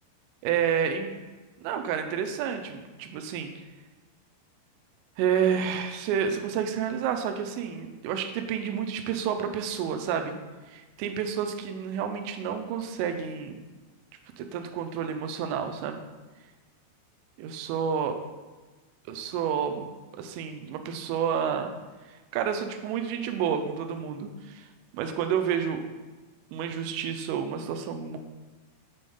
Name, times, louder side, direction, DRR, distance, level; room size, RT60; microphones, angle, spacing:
voice 1, 0.4-1.1 1.6-3.5 5.2-10.3 10.7-13.6 14.4-16.0 17.4-18.1 19.1-19.9 20.1-21.7 22.1-24.7 24.9-25.8 26.5-28.2, right 7 dB, 90° right, 6 dB, 3.2 m, -30 dB
8.4 x 3.6 x 5.4 m, 1.3 s
omnidirectional pair, 5.7 m